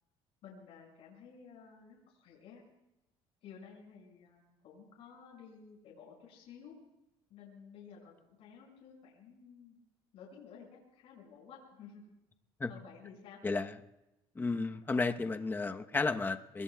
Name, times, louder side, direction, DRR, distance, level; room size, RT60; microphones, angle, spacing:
voice 1, 0.4-2.6 3.4-6.7 7.3-9.8 10.1-12.1 12.7-13.4, left 6 dB, 70° left, -5 dB, 6.3 m, -54 dB
voice 2, 13.4-13.8 14.3-16.6, left 3 dB, 20° left, 7 dB, 1.0 m, -33 dB
27.0 x 21.0 x 2.4 m, 0.95 s
cardioid pair, 105°, 11 cm